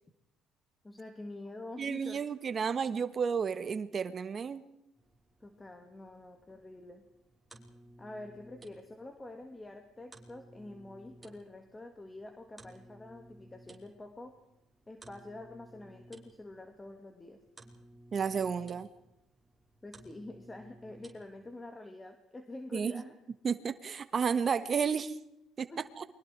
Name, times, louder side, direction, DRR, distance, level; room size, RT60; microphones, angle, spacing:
voice 1, 0.8-2.2 5.4-7.0 8.0-14.4 14.9-17.4 19.8-23.1 25.7-25.8, left 2 dB, 20° left, 5 dB, 2.7 m, -47 dB
voice 2, 1.8-4.6 18.1-18.9 22.7-23.0 23.4-25.2 25.6-25.7 26.0-26.1, right 6 dB, 40° right, 12 dB, 1.5 m, -32 dB
sound 1, 5.0-21.7, right 1 dB, 15° right, 5.3 m, -57 dB
29.0 x 24.0 x 4.8 m, 0.85 s
cardioid pair, 100°, 0 cm